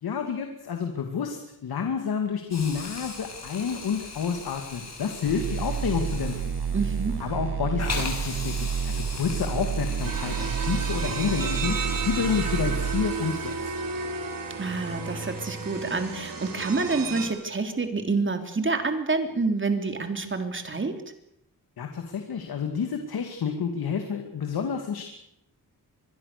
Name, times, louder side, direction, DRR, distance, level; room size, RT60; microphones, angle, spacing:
voice 1, 0.0-6.5 7.2-11.8 12.0-13.5 21.8-25.1, left 6 dB, 85° left, 5 dB, 2.5 m, -29 dB
Hiss, 2.5-13.8, left 3 dB, 45° left, 6.3 m, -39 dB
sound 1, 5.3-13.1, right 7 dB, 90° right, 1.1 m, -30 dB
voice 2, 6.7-7.2 14.6-20.9, right 3 dB, 35° right, 6 dB, 3.5 m, -27 dB
sound 2, 10.0-17.3, right 4 dB, 65° right, 5.1 m, -33 dB
25.5 x 22.0 x 6.8 m, 0.76 s
wide cardioid pair, 115°, 36 cm